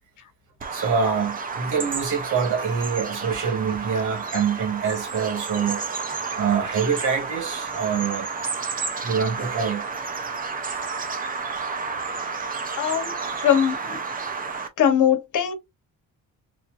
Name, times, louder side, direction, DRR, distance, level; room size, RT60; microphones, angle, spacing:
Bird vocalization bird call bird song, 0.6-14.7, right 4 dB, 25° right, 0.5 m, -31 dB
voice 1, 0.7-8.3 9.0-9.9, right 6 dB, 60° right, 1.5 m, -25 dB
voice 2, 12.8-13.1 13.4-14.0 14.8-15.5, left 9 dB, 60° left, 1.2 m, -21 dB
4.3 x 2.6 x 2.4 m
cardioid pair, 160°, 35 cm